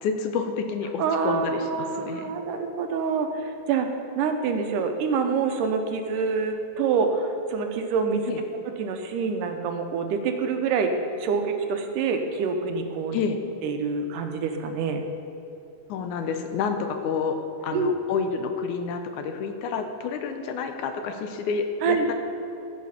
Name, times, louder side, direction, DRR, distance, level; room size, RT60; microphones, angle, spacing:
voice 1, 0.0-2.3 8.3-8.4 13.1-13.4 15.9-17.4 17.6-22.1, left 5 dB, 75° left, 6 dB, 2.1 m, -29 dB
voice 2, 1.0-3.9 4.2-8.2 8.7-13.2 13.6-15.0 17.7-17.9 21.8-22.1, right 5 dB, 80° right, 5 dB, 2.4 m, -26 dB
14.0 x 6.0 x 5.7 m, 2.9 s
omnidirectional pair, 3.7 m